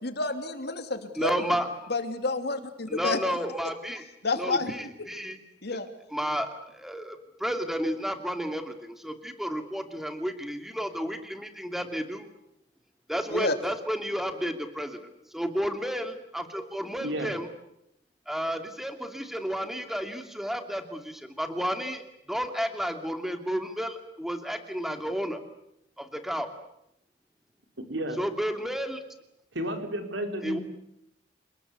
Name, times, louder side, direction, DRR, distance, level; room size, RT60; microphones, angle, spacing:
voice 1, 0.0-1.3 1.9-3.2 4.2-4.7 5.6-5.9 13.3-13.5, left 3 dB, 60° left, 7 dB, 2.9 m, -29 dB
voice 2, 1.2-1.9 2.9-4.1 4.4-5.4 6.1-12.3 13.1-17.5 18.3-25.4 26.0-26.5 28.2-29.0 30.4-30.6, equal, ahead, 7 dB, 2.6 m, -32 dB
voice 3, 17.0-17.3 27.8-28.2 29.5-30.6, right 1 dB, 85° right, 5 dB, 4.4 m, -32 dB
28.0 x 20.0 x 8.4 m, 0.81 s
head